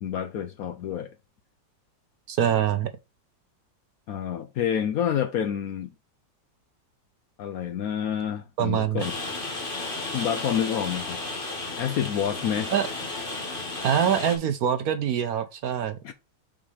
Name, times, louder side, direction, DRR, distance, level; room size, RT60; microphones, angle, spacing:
voice 1, 0.0-1.1 4.1-5.9 7.4-9.2 10.1-11.2 11.8-12.7 13.4-13.6 16.0-16.1, left 9 dB, 70° left, 0.9 m, -28 dB
voice 2, 2.3-2.9 8.6-9.0 12.7-12.9 13.8-16.1, right 9 dB, 65° right, 1.0 m, -24 dB
Rain, 9.0-14.4, left 2 dB, 30° left, 1.8 m, -33 dB
5.4 x 5.1 x 4.8 m
omnidirectional pair, 2.0 m